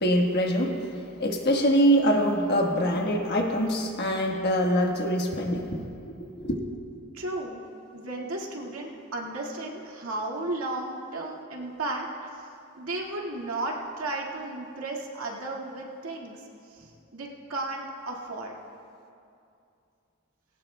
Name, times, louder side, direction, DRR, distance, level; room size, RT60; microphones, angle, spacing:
voice 1, 0.0-6.5, equal, 50° left, 2 dB, 1.3 m, -24 dB
voice 2, 7.1-7.6 7.9-12.5 12.8-18.6, right 2 dB, 80° right, -1 dB, 2.0 m, -34 dB
19.5 x 17.5 x 2.2 m, 2.6 s
head